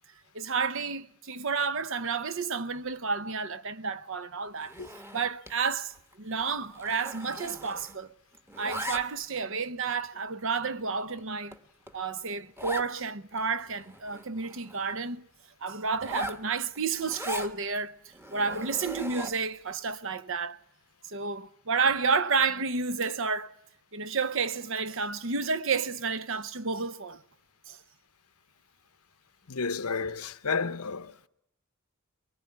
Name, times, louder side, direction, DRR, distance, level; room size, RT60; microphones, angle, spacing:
voice 1, 0.3-4.7 5.1-8.1 8.6-11.6 11.9-15.2 15.6-17.9 18.3-20.6 21.0-23.5 23.9-27.2 27.7-27.8, right 5 dB, 60° right, 0.9 m, -31 dB
Zipper (clothing), 4.6-5.6 5.9-6.1 6.4-8.1 8.3-9.4 10.0-10.1 10.7-10.8 11.2-11.3 11.5-11.6 11.9-12.0 12.6-12.9 13.4-13.5 13.7-15.0 15.9-17.5 18.1-19.5, right 1 dB, 10° right, 1.2 m, -40 dB
voice 2, 29.5-31.1, left 5 dB, 85° left, 1.0 m, -31 dB
24.0 x 20.5 x 9.7 m
head